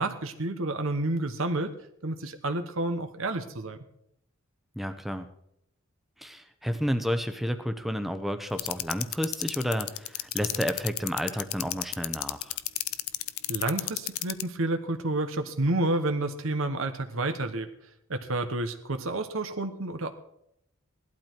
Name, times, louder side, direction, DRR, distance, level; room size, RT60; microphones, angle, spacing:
voice 1, 0.0-1.8 2.0-3.8 13.5-17.7 18.1-20.1, right 2 dB, 70° right, 8 dB, 1.1 m, -30 dB
voice 2, 4.8-5.3 6.2-12.5, equal, ahead, 8 dB, 0.9 m, -31 dB
sound 1, 8.6-14.4, left 17 dB, 85° left, 0.7 m, -29 dB
17.0 x 12.0 x 4.5 m, 0.76 s
head